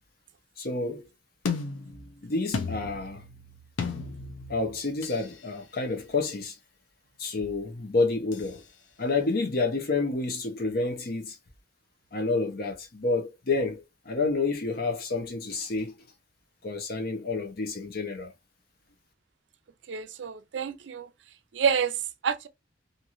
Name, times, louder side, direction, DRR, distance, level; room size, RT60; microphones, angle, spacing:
voice 1, 0.6-1.0 2.2-3.2 4.5-6.6 7.2-8.6 9.0-11.4 12.1-16.0 16.6-18.3, left 3 dB, 55° left, 0.8 m, -29 dB
sound 1, 1.4-5.3 8.3-8.5, left 5 dB, 90° left, 0.5 m, -35 dB
voice 2, 19.9-21.1 21.5-22.0 22.2-22.5, right 7 dB, 70° right, 0.4 m, -28 dB
2.9 x 2.6 x 2.5 m
head